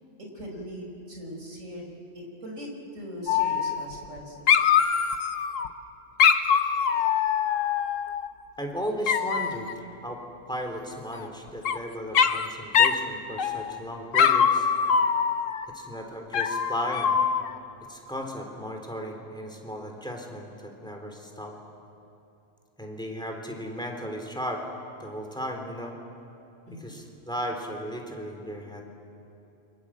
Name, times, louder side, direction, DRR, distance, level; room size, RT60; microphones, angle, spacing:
voice 1, 0.3-1.8 2.1-4.7 26.7-27.0, equal, 75° right, 0 dB, 5.4 m, -40 dB
Dog, 3.3-4.2 4.5-5.7 6.2-8.3 9.1-9.7 11.1-11.8 12.1-12.5 12.7-13.0 13.4-13.8 14.1-15.6 16.3-17.6, left 7 dB, 75° left, 1.3 m, -23 dB
voice 2, 8.6-10.2 10.5-14.7 15.7-17.2 17.9-21.5 22.8-24.6 25.0-26.0 26.7-28.9, equal, 5° left, 2 dB, 3.5 m, -35 dB
28.5 x 25.0 x 7.6 m, 2.9 s
omnidirectional pair, 1.3 m